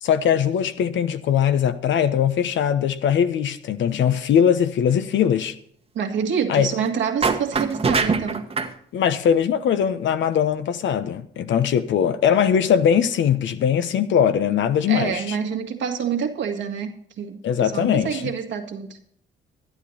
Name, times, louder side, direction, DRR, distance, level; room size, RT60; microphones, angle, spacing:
voice 1, 0.0-5.5 6.5-6.7 8.9-15.4 17.4-18.3, left 8 dB, 70° left, 1.0 m, -21 dB
voice 2, 6.0-8.5 14.9-19.0, right 7 dB, 70° right, 1.8 m, -27 dB
sound 1, 7.2-8.7, right 4 dB, 30° right, 1.2 m, -23 dB
12.0 x 11.0 x 4.2 m
cardioid pair, 90°, 20 cm